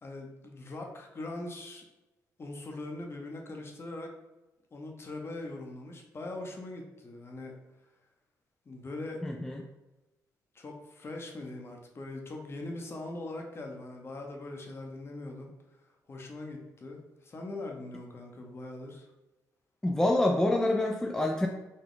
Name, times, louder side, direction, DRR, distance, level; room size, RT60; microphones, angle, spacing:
voice 1, 0.0-1.8 2.4-4.1 4.7-7.6 8.7-9.3 10.5-15.5 15.8-19.1, left 2 dB, 35° left, 2 dB, 0.7 m, -41 dB
voice 2, 9.2-9.6 19.8-21.5, left 1 dB, 10° left, 1 dB, 0.3 m, -26 dB
3.9 x 2.2 x 3.7 m, 1.0 s
cardioid pair, 90°, 7 cm